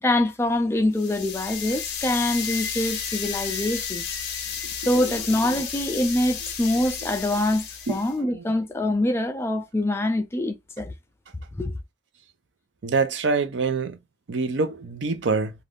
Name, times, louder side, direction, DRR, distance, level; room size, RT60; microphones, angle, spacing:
voice 1, 0.0-4.0 4.8-10.9 11.5-11.8, left 1 dB, 15° left, 0.3 m, -24 dB
sound 1, 0.9-8.1, left 7 dB, 60° left, 0.6 m, -32 dB
voice 2, 12.8-14.0 14.3-15.5, right 4 dB, 75° right, 0.6 m, -25 dB
2.5 x 2.3 x 3.4 m
head